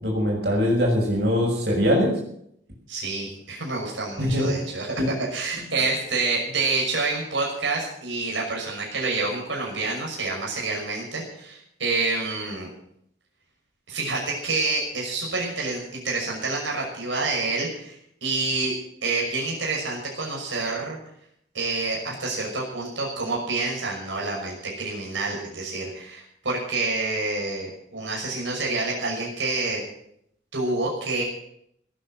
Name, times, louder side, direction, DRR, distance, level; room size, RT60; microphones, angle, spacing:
voice 1, 0.0-2.2 4.2-4.4 5.0-5.1, equal, 55° right, -2 dB, 6.3 m, -22 dB
voice 2, 2.9-5.0 5.3-12.7 13.9-18.7 19.0-21.0 21.5-29.8 30.5-31.2, right 3 dB, 80° right, -3 dB, 6.0 m, -28 dB
18.5 x 9.9 x 7.7 m, 0.72 s
head